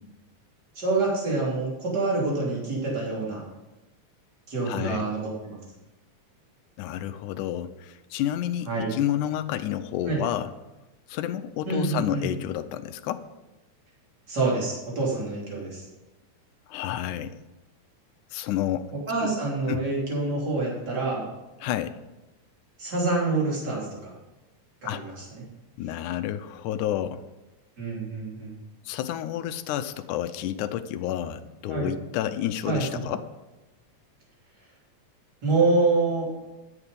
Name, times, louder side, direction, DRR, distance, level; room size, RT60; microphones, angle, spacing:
voice 1, 0.7-3.4 4.5-5.6 8.7-8.9 10.1-10.2 11.7-12.3 14.3-15.9 18.9-21.2 22.8-24.1 24.8-25.4 27.8-28.6 31.7-31.9 32.7-33.0 35.4-36.3, right 3 dB, 30° right, -4 dB, 3.8 m, -26 dB
voice 2, 4.7-5.1 6.8-10.5 11.1-13.2 16.7-17.4 18.3-18.9 19.2-19.3 19.7-19.8 21.6-22.0 24.8-25.0 25.8-27.2 28.9-33.2, left 11 dB, 90° left, 10 dB, 2.1 m, -30 dB
11.0 x 8.5 x 5.1 m, 1.0 s
omnidirectional pair, 3.5 m